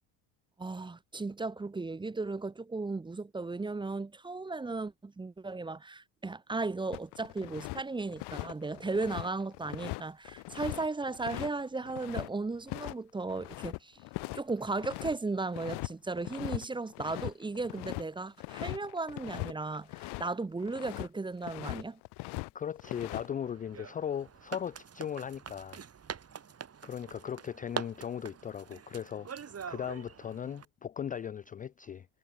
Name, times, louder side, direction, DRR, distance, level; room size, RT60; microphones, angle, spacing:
voice 1, 0.6-14.0 14.3-22.0, right 3 dB, 10° right, 0.6 m, -36 dB
sound 1, 6.9-7.8 8.1-12.3 12.7-12.9 13.2-15.1 15.5-15.9 16.2-16.6 16.9-20.3 20.6-21.1 21.4-22.5 22.8-23.3, left 23 dB, 75° left, 0.9 m, -40 dB
voice 2, 22.5-25.8 26.8-32.1, left 8 dB, 20° left, 0.3 m, -38 dB
sound 2, 22.8-30.6, right 7 dB, 35° right, 2.8 m, -44 dB
supercardioid pair, 85°, 40 cm